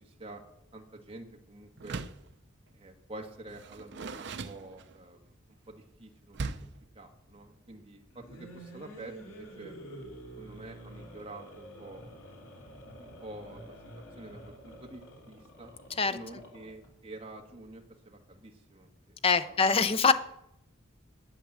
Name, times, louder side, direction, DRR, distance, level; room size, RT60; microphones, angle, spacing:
voice 1, 0.0-0.4 0.7-2.0 2.7-5.3 5.7-6.7 6.9-9.7 10.3-12.0 13.0-13.7 14.2-15.7 16.1-19.2 19.4-19.5, right 2 dB, 25° right, 2 dB, 1.6 m, -48 dB
Door, 1.8-2.3 3.5-5.2 6.3-6.8, right 4 dB, 55° right, 0.6 m, -39 dB
sound 1, 8.1-16.9, equal, 75° left, 3.1 m, -48 dB
voice 2, 19.2-20.1, left 4 dB, 25° left, 11 dB, 0.6 m, -24 dB
11.5 x 8.4 x 7.3 m, 0.80 s
head